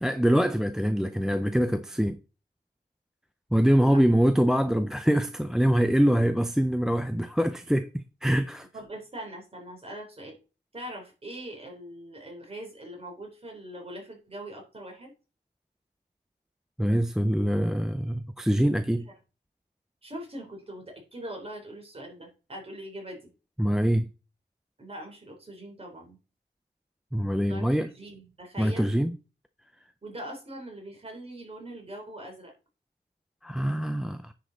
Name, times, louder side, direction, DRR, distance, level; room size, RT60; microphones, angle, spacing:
voice 1, 0.0-2.2 3.5-8.7 16.8-19.1 23.6-24.1 27.1-27.9 28.6-29.1 33.4-34.3, equal, 5° right, 0.4 m, -24 dB
voice 2, 8.7-10.4 10.7-15.1 20.0-23.2 24.8-26.2 27.4-28.9 30.0-32.5, right 1 dB, 30° right, 3.4 m, -42 dB
9.9 x 5.2 x 3.9 m
wide cardioid pair, 145°, 19 cm